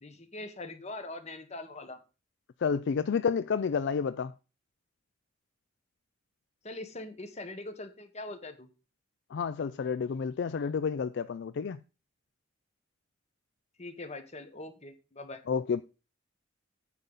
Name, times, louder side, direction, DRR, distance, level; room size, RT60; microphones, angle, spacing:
voice 1, 0.0-2.0 6.6-8.7 13.8-15.4, left 2 dB, 35° left, 1.3 m, -42 dB
voice 2, 2.6-4.3 9.3-11.8 15.5-15.8, left 6 dB, 60° left, 0.4 m, -30 dB
9.3 x 4.0 x 7.2 m
head